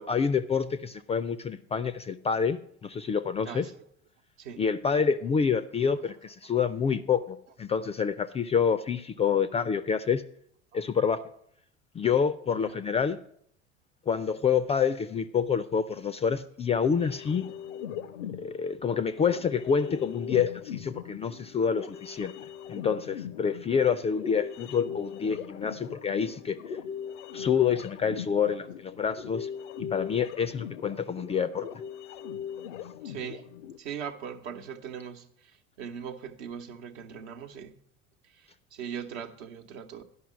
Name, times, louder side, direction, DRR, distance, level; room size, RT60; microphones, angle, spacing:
voice 1, 0.0-3.7 4.6-10.2 10.7-11.2 11.9-13.2 14.1-17.5 18.4-22.3 22.7-26.6 27.3-29.5 29.8-31.7, left 6 dB, 20° left, 0.3 m, -27 dB
voice 2, 3.4-3.9 4.4-4.6 12.5-12.8 21.0-21.1 33.0-33.5 33.8-37.7 38.3-40.0, right 7 dB, 70° right, 1.0 m, -40 dB
sound 1, 17.0-33.8, left 8 dB, 80° left, 0.6 m, -40 dB
11.0 x 5.6 x 6.1 m
hypercardioid pair, 75°, 37 cm